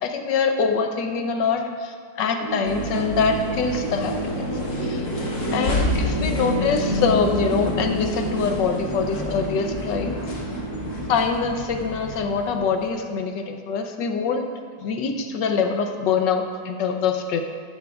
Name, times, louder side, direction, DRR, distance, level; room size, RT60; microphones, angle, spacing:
voice 1, 0.0-4.5 4.8-5.1 5.5-10.2 11.1-14.5 14.8-17.4, left 5 dB, 75° left, 5 dB, 1.4 m, -24 dB
sound 1, 2.4-11.1, right 1 dB, 60° right, 1.0 m, -29 dB
sound 2, 2.6-12.9, left 2 dB, 45° left, 1.5 m, -30 dB
14.5 x 11.0 x 2.4 m, 2.1 s
omnidirectional pair, 2.0 m